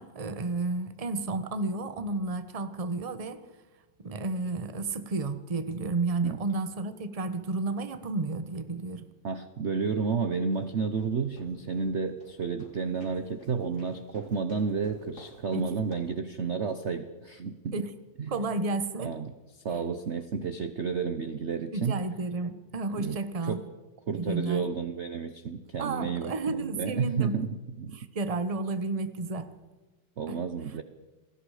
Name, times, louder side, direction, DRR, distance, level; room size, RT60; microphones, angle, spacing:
voice 1, 0.0-3.4 4.0-9.1 15.5-15.8 17.7-17.9 18.3-19.2 19.7-19.8 21.7-23.6 24.2-24.7 25.8-27.4 27.9-29.5 30.3-30.4, right 3 dB, 25° right, 11 dB, 1.0 m, -32 dB
voice 2, 9.2-17.9 18.2-18.4 19.0-22.0 22.9-23.6 24.1-28.0 30.2-30.8, right 5 dB, 45° right, 10 dB, 1.0 m, -31 dB
sound 1, 10.4-16.3, left 1 dB, 50° left, 4.4 m, -52 dB
28.0 x 20.0 x 5.0 m, 1.2 s
omnidirectional pair, 2.1 m